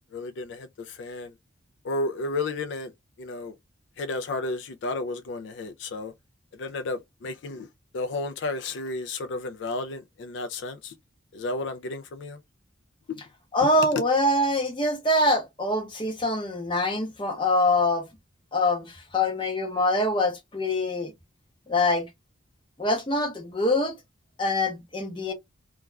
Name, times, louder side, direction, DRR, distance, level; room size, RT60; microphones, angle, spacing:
voice 1, 0.1-1.3 1.8-2.9 3.2-3.5 4.0-6.1 6.5-7.7 7.9-11.0 11.3-12.4 13.1-13.2 14.0-14.1, left 2 dB, 65° left, 0.3 m, -32 dB
voice 2, 13.5-18.1 18.5-21.1 21.7-22.1 22.8-24.0 24.4-25.3, left 1 dB, 25° left, 0.7 m, -24 dB
2.3 x 2.3 x 3.0 m
head